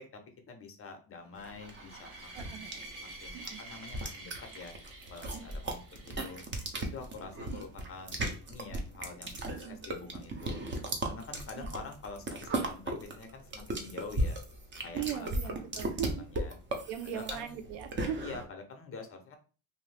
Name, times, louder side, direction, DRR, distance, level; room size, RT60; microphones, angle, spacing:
voice 1, 0.5-2.7 3.0-4.7 5.1-5.8 6.1-6.4 6.9-10.6 11.0-14.4 14.8-15.3 16.0-16.6 17.1-17.5 18.2-19.4, left 4 dB, 30° left, 5 dB, 0.6 m, -46 dB
sound 1, 1.4-18.4, right 1 dB, 25° right, 0.5 m, -37 dB
sound 2, 1.4-6.6, right 2 dB, 40° right, 1.1 m, -49 dB
voice 2, 2.3-2.8 3.3-3.6 5.3-5.4 7.5-7.6 9.5-9.8 11.5-11.7 14.9-16.2 16.9-18.2, right 9 dB, 85° right, 9 dB, 0.7 m, -39 dB
2.6 x 2.6 x 3.3 m, 0.36 s
cardioid pair, 125°, 48 cm